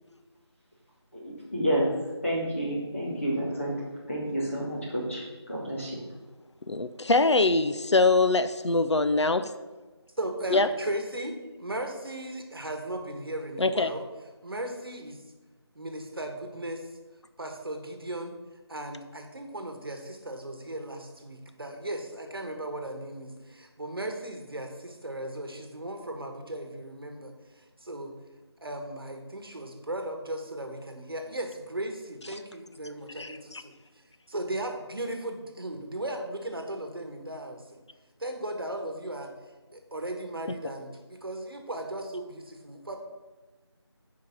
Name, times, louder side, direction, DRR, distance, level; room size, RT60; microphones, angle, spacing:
voice 1, 1.1-1.9 2.2-3.8 4.1-6.0, equal, 30° left, -6 dB, 2.5 m, -30 dB
voice 2, 6.7-9.5 10.5-10.7 13.6-13.9 33.2-33.6, left 3 dB, 85° left, 11 dB, 0.6 m, -23 dB
voice 3, 10.2-14.0 14.4-15.2 15.7-16.9 17.4-18.3 18.7-28.1 28.6-37.8 38.2-39.3 39.7-43.0, right 1 dB, 55° right, 5 dB, 1.4 m, -37 dB
9.2 x 4.8 x 5.7 m, 1.2 s
figure-of-eight pair, 175°, 14 cm